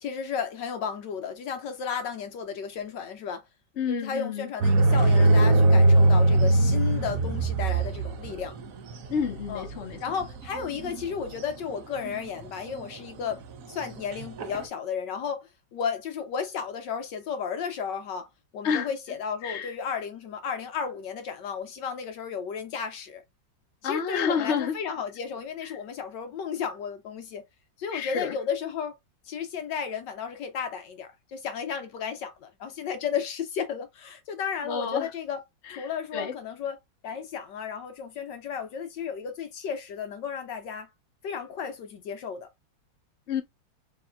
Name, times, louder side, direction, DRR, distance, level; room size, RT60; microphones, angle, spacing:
voice 1, 0.0-3.4 3.8-8.6 9.5-9.7 10.0-23.2 23.8-27.4 27.8-28.9 29.2-35.4 35.8-40.9 41.2-42.5, left 7 dB, 70° left, 1.3 m, -33 dB
voice 2, 3.8-4.5 9.1-10.0 18.6-18.9 19.4-19.7 23.8-24.7 27.9-28.3 34.7-35.0 35.7-35.8 36.1-36.3 43.3-43.4, left 6 dB, 45° left, 1.1 m, -29 dB
sound 1, 4.6-11.4 12.1-12.5 12.8-12.9 13.3-14.6, right 2 dB, 60° right, 1.0 m, -21 dB
6.8 x 3.1 x 2.3 m
omnidirectional pair, 2.1 m